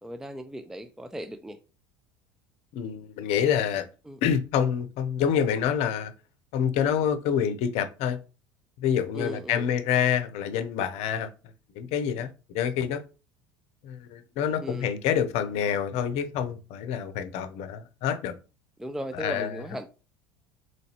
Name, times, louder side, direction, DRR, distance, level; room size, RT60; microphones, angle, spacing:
voice 1, 0.0-1.6 4.1-4.2 9.1-9.6 14.6-14.9 18.8-19.9, equal, 5° right, 0.4 m, -37 dB
voice 2, 2.7-3.9 4.2-6.1 6.5-8.2 8.8-11.3 11.7-13.0 13.8-18.4 19.1-19.9, left 8 dB, 60° left, 0.6 m, -27 dB
4.0 x 3.1 x 2.9 m
hypercardioid pair, 75°, 13 cm